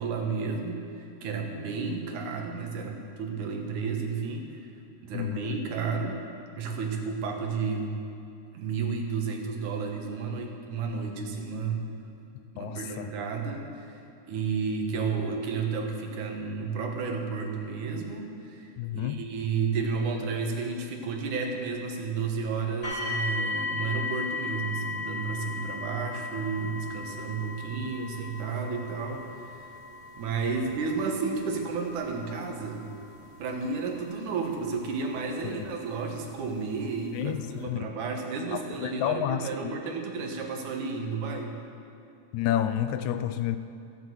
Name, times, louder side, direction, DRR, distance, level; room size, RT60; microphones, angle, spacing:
voice 1, 0.0-4.5 5.0-6.2 6.5-8.0 8.5-11.9 12.5-14.0 14.3-29.5 30.2-32.9 33.4-41.6, right 5 dB, 85° right, 2 dB, 2.8 m, -32 dB
voice 2, 5.1-5.6 12.6-13.1 18.8-19.2 35.4-35.7 37.1-37.9 38.5-39.8 42.3-43.6, left 11 dB, 80° left, 11 dB, 1.9 m, -30 dB
sound 1, 22.8-35.7 36.6-36.7 37.2-37.3, left 3 dB, 40° left, 3.6 m, -37 dB
15.0 x 8.1 x 7.9 m, 2.5 s
omnidirectional pair, 3.4 m